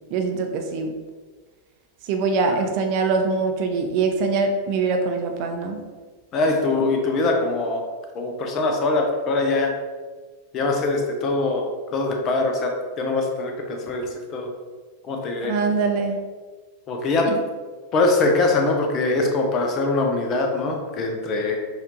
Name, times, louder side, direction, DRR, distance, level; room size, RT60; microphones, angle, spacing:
voice 1, 0.1-1.0 2.0-5.8 15.4-16.2 17.3-17.4, right 4 dB, 45° right, 4 dB, 0.5 m, -23 dB
voice 2, 6.3-7.8 8.1-9.7 10.5-14.5 15.0-15.5 16.9-17.3 17.9-21.6, left 3 dB, 35° left, 2 dB, 0.6 m, -23 dB
4.2 x 2.6 x 2.8 m, 1.4 s
figure-of-eight pair, 90°, 0 cm